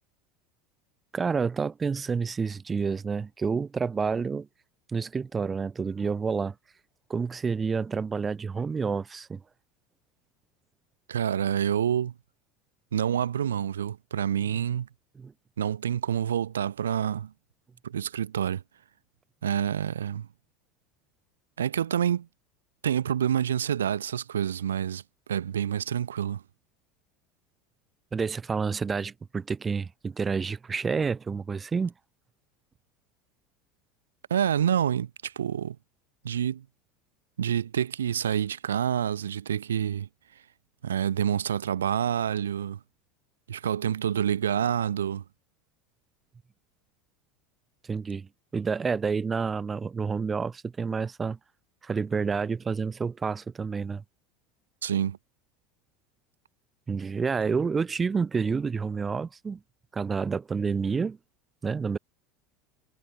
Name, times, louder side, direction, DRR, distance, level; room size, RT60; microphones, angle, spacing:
voice 1, 1.1-4.5 4.9-6.5 7.1-9.4 15.2-15.3 28.1-31.9 47.9-48.3 48.5-51.4 51.8-54.0 56.9-59.6 59.9-61.2 61.6-62.0, right 5 dB, 25° right, 4.5 m, -29 dB
voice 2, 11.1-12.1 12.9-14.9 15.6-17.3 17.8-18.6 19.4-20.3 21.6-22.3 22.8-25.0 25.3-26.4 34.3-35.8 36.2-36.6 37.4-40.1 40.8-42.8 43.5-45.2 54.8-55.2, right 9 dB, 90° right, 4.9 m, -27 dB
hypercardioid pair, 85°, 0 cm